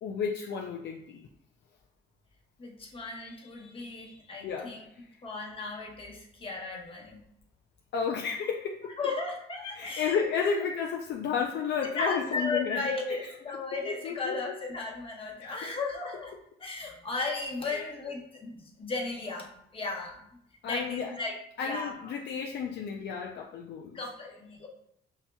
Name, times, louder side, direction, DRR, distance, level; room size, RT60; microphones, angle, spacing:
voice 1, 0.0-1.2 4.4-4.7 7.9-9.0 9.8-12.8 13.1-13.2 13.8-14.3 15.4-15.7 17.7-17.8 20.6-21.2 21.6-24.0, left 6 dB, 60° left, 1 dB, 0.4 m, -32 dB
voice 2, 2.6-4.9 5.2-7.2 9.0-10.2 11.8-20.2 20.6-21.9 23.9-24.7, left 3 dB, 25° left, 0 dB, 1.0 m, -35 dB
5.7 x 2.7 x 2.2 m, 0.71 s
cardioid pair, 90°, 20 cm